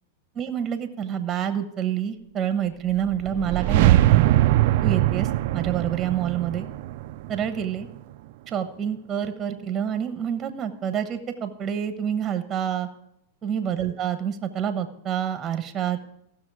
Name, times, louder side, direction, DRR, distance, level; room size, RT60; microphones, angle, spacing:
voice 1, 0.3-4.3 4.8-6.7 7.3-7.9 8.5-12.9 13.4-16.0, right 9 dB, 25° right, 9 dB, 1.0 m, -27 dB
sound 1, 3.0-8.1, right 15 dB, 60° right, 0.4 m, -22 dB
15.5 x 6.3 x 4.8 m, 0.75 s
hypercardioid pair, 135°, 0 cm